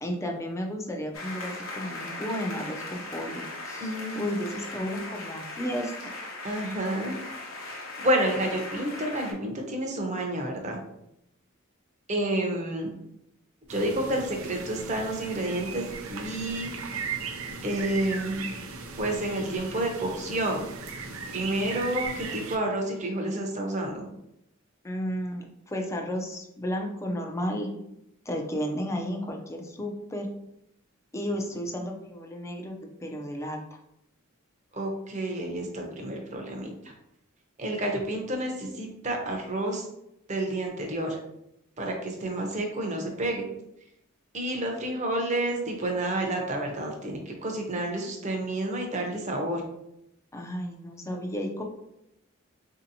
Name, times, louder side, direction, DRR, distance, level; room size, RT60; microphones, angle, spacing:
voice 1, 0.0-6.1 24.8-27.7 28.3-30.3 31.1-32.8 33.0-33.6 50.3-51.6, equal, 15° left, 2 dB, 0.4 m, -33 dB
sound 1, 1.1-9.3, left 2 dB, 75° left, 0.8 m, -39 dB
voice 2, 3.8-4.4 6.4-7.2 7.7-10.8 12.1-12.9 13.7-15.8 16.1-16.7 17.6-18.5 19.0-20.7 21.3-24.1 34.7-36.7 37.6-39.8 40.3-41.2 41.8-43.4 44.3-49.6, right 1 dB, 35° right, 1 dB, 0.7 m, -29 dB
sound 2, 13.7-22.6, right 4 dB, 75° right, 0.5 m, -37 dB
4.2 x 2.7 x 2.7 m, 0.81 s
head